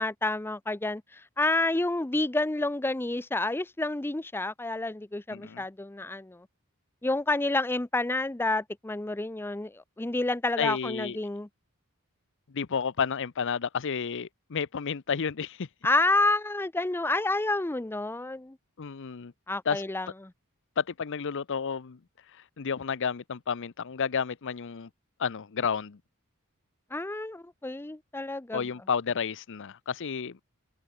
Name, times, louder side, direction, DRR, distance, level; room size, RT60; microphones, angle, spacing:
voice 1, 0.0-6.5 7.0-11.5 15.8-18.6 19.5-20.3 26.9-28.7, left 2 dB, 10° left, 0.5 m, -29 dB
voice 2, 5.3-5.6 10.6-11.2 12.5-15.7 18.8-19.3 19.6-19.8 20.8-22.0 22.3-24.9 25.2-26.0 28.5-30.4, left 6 dB, 60° left, 0.6 m, -31 dB
head